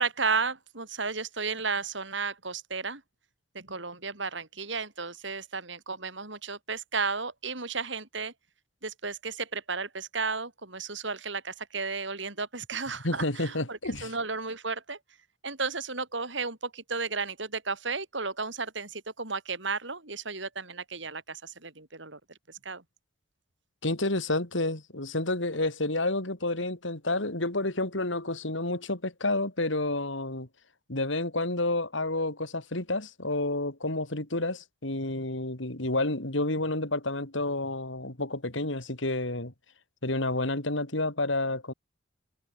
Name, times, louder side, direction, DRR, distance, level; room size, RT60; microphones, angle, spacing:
voice 1, 0.0-3.0 3.5-8.3 8.8-15.0 15.4-22.2 22.5-22.8, right 4 dB, 65° right, 5.2 m, -33 dB
voice 2, 13.0-14.1 23.8-30.5 30.9-39.5 40.0-41.7, left 2 dB, 75° left, 3.8 m, -30 dB
head